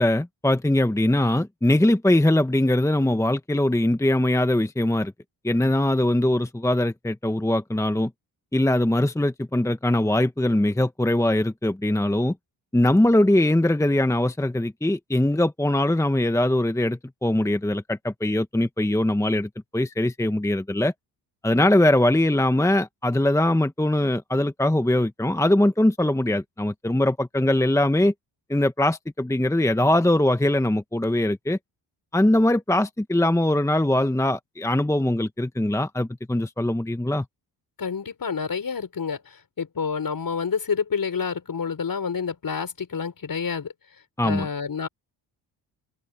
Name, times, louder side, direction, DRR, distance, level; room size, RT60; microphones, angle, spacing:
voice 1, 0.0-5.1 5.4-8.1 8.5-12.3 12.7-20.9 21.4-28.1 28.5-31.6 32.1-37.2 44.2-44.5, left 1 dB, 5° left, 1.2 m, -21 dB
voice 2, 37.8-39.2 39.6-43.7 44.2-44.9, left 6 dB, 45° left, 5.7 m, -28 dB
open air
supercardioid pair, 60°, 46 cm